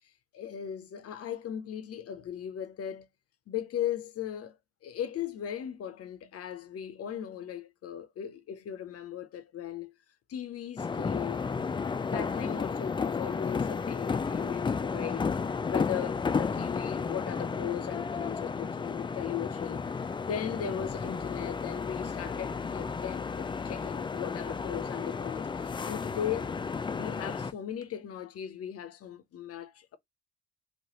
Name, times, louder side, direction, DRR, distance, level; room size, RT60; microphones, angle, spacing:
voice 1, 0.3-3.1 3.5-4.6 4.8-9.9 10.3-11.4 11.8-15.3 15.7-19.8 20.3-26.6 26.9-30.0, left 10 dB, 55° left, 0.6 m, -37 dB
sound 1, 10.8-27.5, left 5 dB, 15° left, 0.3 m, -33 dB
3.1 x 2.2 x 2.8 m
hypercardioid pair, 40°, 29 cm